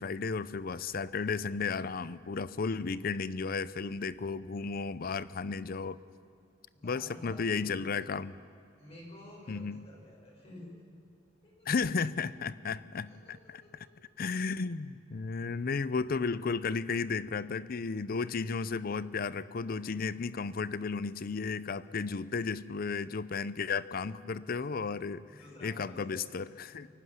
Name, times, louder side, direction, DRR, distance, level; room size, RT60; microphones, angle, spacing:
voice 1, 0.0-6.0 6.8-8.3 9.5-9.8 11.7-13.6 14.2-25.2 25.6-26.9, left 5 dB, 50° left, 16 dB, 0.5 m, -34 dB
voice 2, 6.7-7.9 8.8-10.7 11.4-11.7 13.0-13.7 25.3-26.2 26.7-26.9, left 1 dB, 35° left, -3 dB, 5.8 m, -51 dB
23.5 x 11.5 x 9.5 m, 2.3 s
head